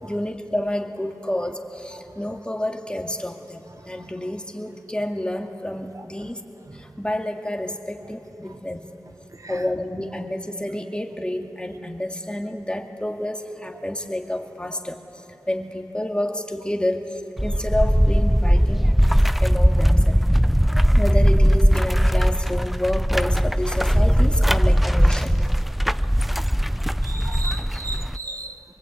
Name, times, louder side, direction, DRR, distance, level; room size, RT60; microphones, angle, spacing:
voice 1, 0.0-6.4 6.8-8.9 9.5-15.0 15.5-17.1 17.4-18.9 19.4-20.2 21.0-25.3, left 1 dB, 15° left, 2 dB, 2.1 m, -29 dB
sound 1, 17.4-28.2, equal, ahead, 0.5 m, -19 dB
voice 2, 27.0-28.6, right 2 dB, 55° right, 6 dB, 1.0 m, -36 dB
24.5 x 23.0 x 8.7 m, 2.9 s
wide cardioid pair, 60°, 7 cm